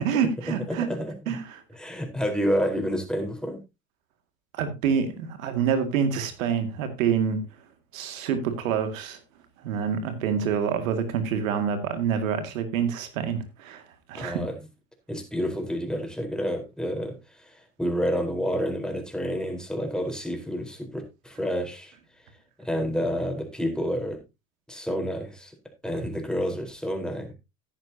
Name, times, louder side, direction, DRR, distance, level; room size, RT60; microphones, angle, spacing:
voice 1, 0.0-0.9 1.3-1.6 4.5-7.4 7.9-9.2 9.6-13.8 14.1-14.4, right 7 dB, 80° right, 8 dB, 2.3 m, -27 dB
voice 2, 0.7-1.4 1.7-3.6 14.1-14.5 15.1-22.0 22.6-24.2 24.7-25.5 25.8-27.3, equal, ahead, 2 dB, 4.2 m, -29 dB
13.5 x 10.0 x 2.8 m, 0.25 s
hypercardioid pair, 75°, 39 cm